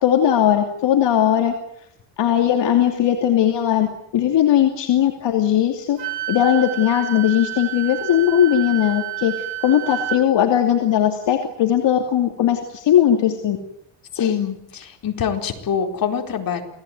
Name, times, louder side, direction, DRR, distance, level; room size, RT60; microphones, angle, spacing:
voice 1, 0.0-1.5 2.2-3.9 4.1-6.0 6.3-9.3 9.6-13.6, left 10 dB, 60° left, 4 dB, 2.8 m, -18 dB
Wind instrument woodwind instrument, 6.0-10.2, right 17 dB, 70° right, 5.4 m, -30 dB
voice 2, 14.1-16.6, left 7 dB, 45° left, 4 dB, 4.4 m, -24 dB
28.5 x 18.0 x 9.4 m, 0.77 s
cardioid pair, 135°, 47 cm